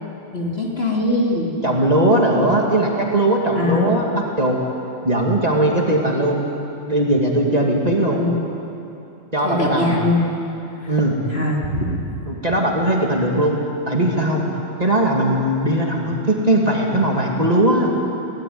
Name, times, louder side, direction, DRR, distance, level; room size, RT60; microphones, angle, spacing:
voice 1, 0.3-1.5 3.6-3.9 7.9-8.4 9.4-10.3 11.3-12.0, left 2 dB, 45° left, -2 dB, 3.2 m, -22 dB
voice 2, 1.6-4.6 5.0-6.5 6.9-8.2 9.3-10.0 10.9-11.2 12.3-13.6 13.9-14.5 14.8-17.9, right 1 dB, 30° right, -1 dB, 2.5 m, -19 dB
22.5 x 17.5 x 9.5 m, 2.8 s
omnidirectional pair, 1.4 m